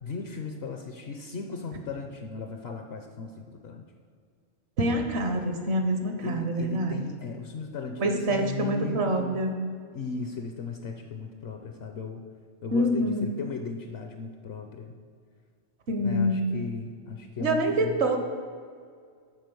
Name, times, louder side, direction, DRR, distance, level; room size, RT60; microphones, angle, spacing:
voice 1, 0.0-3.8 6.2-9.4 9.9-12.2 12.6-15.0 16.0-18.1, left 4 dB, 65° left, 4 dB, 0.9 m, -37 dB
voice 2, 4.8-7.0 8.0-9.5 12.7-13.4 15.9-16.5 17.4-18.2, right 1 dB, 65° right, 4 dB, 1.1 m, -26 dB
9.7 x 3.8 x 6.8 m, 2.1 s
omnidirectional pair, 1.2 m